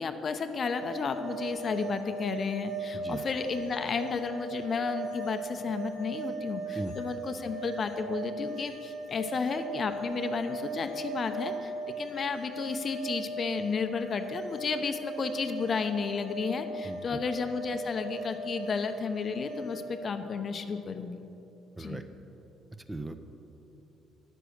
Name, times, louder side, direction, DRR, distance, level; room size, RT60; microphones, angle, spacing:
voice 1, 0.0-21.2 21.8-22.0, left 5 dB, 45° left, 8 dB, 0.7 m, -32 dB
sound 1, 0.6-19.8, right 3 dB, 85° right, 1.8 m, -39 dB
voice 2, 16.8-17.2 21.8-22.1 22.9-23.2, right 2 dB, 15° right, 8 dB, 0.7 m, -38 dB
9.6 x 7.9 x 6.5 m, 3.0 s
hypercardioid pair, 60°, 0 cm